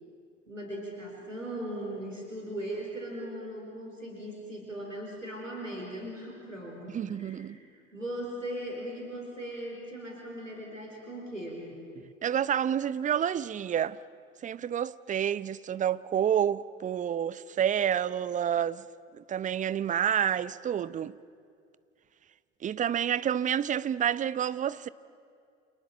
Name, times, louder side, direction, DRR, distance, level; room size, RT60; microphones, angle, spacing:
voice 1, 0.5-7.6 7.9-11.8, right 1 dB, 90° right, 4.9 m, -39 dB
voice 2, 6.9-7.6 12.2-14.0 14.4-18.8 19.1-21.1 22.6-24.9, right 9 dB, 20° right, 0.7 m, -29 dB
29.5 x 27.5 x 7.4 m
figure-of-eight pair, 75°, 37 cm